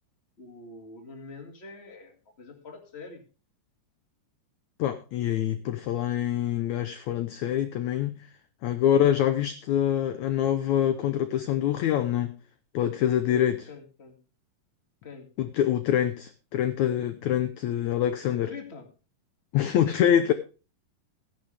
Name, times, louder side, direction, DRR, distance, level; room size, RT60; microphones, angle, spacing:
voice 1, 0.4-3.2 13.3-14.2 15.0-15.3 18.5-18.9, left 4 dB, 25° left, 3 dB, 1.9 m, -44 dB
voice 2, 4.8-8.3 8.6-12.3 12.7-13.6 15.4-18.5 19.5-20.3, left 10 dB, 75° left, 10 dB, 1.8 m, -25 dB
15.5 x 10.5 x 3.4 m, 0.34 s
omnidirectional pair, 4.1 m